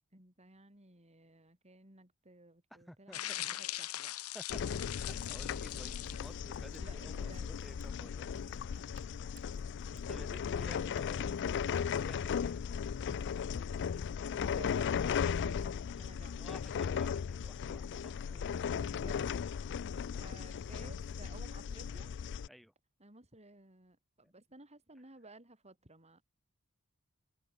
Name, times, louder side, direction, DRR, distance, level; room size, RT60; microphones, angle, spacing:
voice 1, 0.1-4.1 6.8-7.7 11.3-11.7 13.4-16.5 18.4-19.3 19.6-22.1 23.0-26.2, right 2 dB, 30° right, 7.1 m, -57 dB
voice 2, 2.7-3.5 4.3-8.3 10.1-11.3 11.9-12.6 16.3-18.8 22.5-22.7, equal, ahead, 4.1 m, -54 dB
sound 1, 3.1-6.3, left 14 dB, 90° left, 1.2 m, -41 dB
sound 2, 4.5-22.5, left 7 dB, 55° left, 0.4 m, -36 dB
Mechanisms, 4.9-12.1, right 2 dB, 90° right, 3.3 m, -61 dB
head